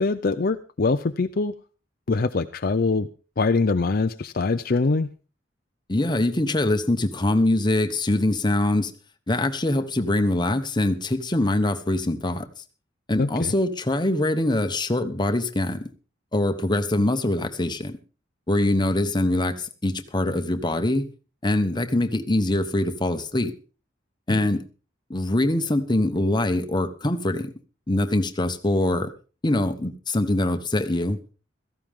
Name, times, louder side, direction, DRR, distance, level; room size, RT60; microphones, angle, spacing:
voice 1, 0.0-1.5 2.1-3.1 3.4-5.1 13.2-13.5 24.3-24.4, left 3 dB, 50° left, 0.6 m, -23 dB
voice 2, 5.9-8.9 9.3-12.5 13.1-15.9 16.3-18.0 18.5-21.1 21.4-23.5 24.3-24.6 25.1-27.5 27.9-29.1 29.4-31.2, left 1 dB, 25° left, 1.2 m, -23 dB
16.5 x 14.5 x 3.7 m
head